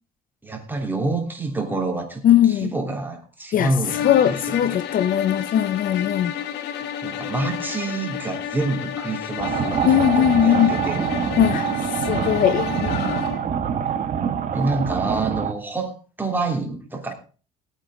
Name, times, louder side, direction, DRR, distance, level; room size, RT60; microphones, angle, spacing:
voice 1, 0.4-4.8 7.0-11.0 14.5-15.9 16.2-17.1, right 2 dB, 10° right, 3.3 m, -27 dB
voice 2, 2.2-2.7 3.5-6.3 9.8-10.7 11.4-11.7 12.1-13.3, left 10 dB, 55° left, 0.7 m, -20 dB
sound 1, 3.8-13.5, left 9 dB, 85° left, 1.6 m, -31 dB
sound 2, 9.4-15.5, right 8 dB, 50° right, 1.5 m, -25 dB
17.5 x 9.0 x 3.9 m
cardioid pair, 110°, 17 cm